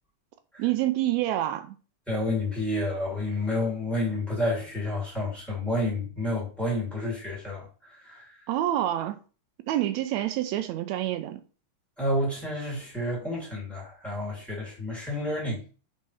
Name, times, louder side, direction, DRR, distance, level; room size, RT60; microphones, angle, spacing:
voice 1, 0.6-1.7 8.5-9.2 9.7-11.4, right 13 dB, 85° right, 1.6 m, -27 dB
voice 2, 2.1-8.3 12.0-15.6, left 1 dB, ahead, 2.8 m, -30 dB
5.4 x 5.3 x 3.5 m
omnidirectional pair, 3.7 m